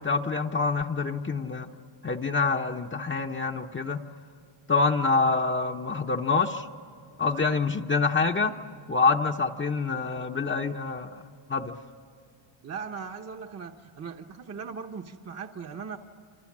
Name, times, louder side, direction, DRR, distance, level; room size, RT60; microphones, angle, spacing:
voice 1, 0.0-1.7 2.0-4.0 4.7-6.7 7.2-8.5 8.9-11.2 11.5-11.7, left 4 dB, 25° left, 3 dB, 0.8 m, -26 dB
voice 2, 12.6-16.0, right 6 dB, 30° right, 3 dB, 1.0 m, -39 dB
27.5 x 27.5 x 7.3 m, 2.6 s
cardioid pair, 125°, 49 cm